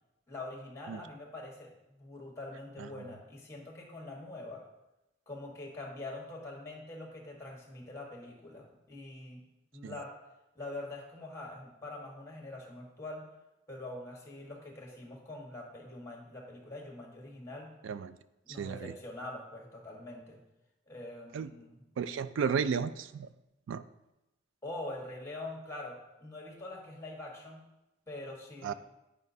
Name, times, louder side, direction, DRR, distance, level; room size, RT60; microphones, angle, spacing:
voice 1, 0.3-4.6 5.3-9.4 9.7-10.1 10.5-13.3 13.7-17.7 18.4-20.4 20.9-21.9 24.6-27.6 28.1-28.7, left 2 dB, 15° left, 0 dB, 1.4 m, -44 dB
voice 2, 17.8-18.2 18.5-18.9 21.3-21.5 22.0-23.3 23.7-23.8 28.6-28.7, right 6 dB, 80° right, 13 dB, 0.3 m, -33 dB
9.7 x 4.9 x 2.7 m, 0.94 s
head